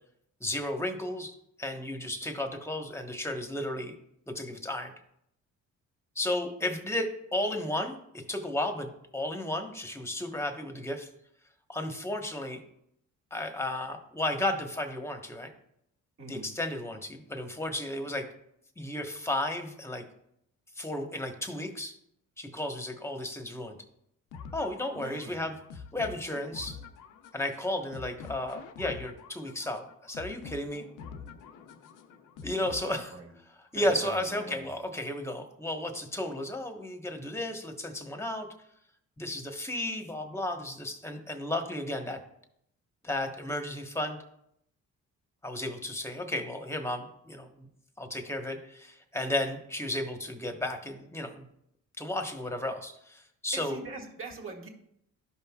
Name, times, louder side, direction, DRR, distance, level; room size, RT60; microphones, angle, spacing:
voice 1, 0.4-3.9 4.3-4.9 6.1-11.1 11.7-12.6 13.3-15.5 16.3-18.3 18.8-20.0 20.8-22.0 22.4-23.8 24.5-26.8 27.3-30.8 32.4-33.1 33.6-38.5 39.2-42.2 43.0-44.2 45.4-47.7 48.0-51.5 52.0-53.8, left 1 dB, 10° left, 5 dB, 1.2 m, -33 dB
voice 2, 16.2-16.5 24.9-25.5 32.8-33.3 33.7-34.6 53.5-54.7, right 3 dB, 45° right, 0 dB, 1.9 m, -43 dB
sound 1, 24.3-33.3, left 6 dB, 90° left, 0.7 m, -46 dB
13.0 x 5.4 x 2.4 m, 0.74 s
cardioid pair, 90°, 30 cm